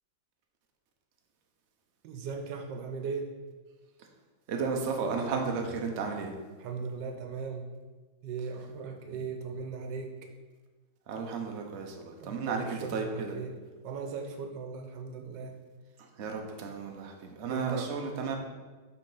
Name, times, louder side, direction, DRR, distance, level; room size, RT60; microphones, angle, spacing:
voice 1, 2.0-3.3 6.6-7.7 8.2-10.1 12.2-13.5 13.8-15.6 17.5-17.9, right 5 dB, 90° right, 4 dB, 1.4 m, -38 dB
voice 2, 4.5-6.3 11.1-13.4 16.0-18.3, right 5 dB, 50° right, 2 dB, 0.9 m, -33 dB
5.6 x 3.8 x 5.4 m, 1.3 s
omnidirectional pair, 1.9 m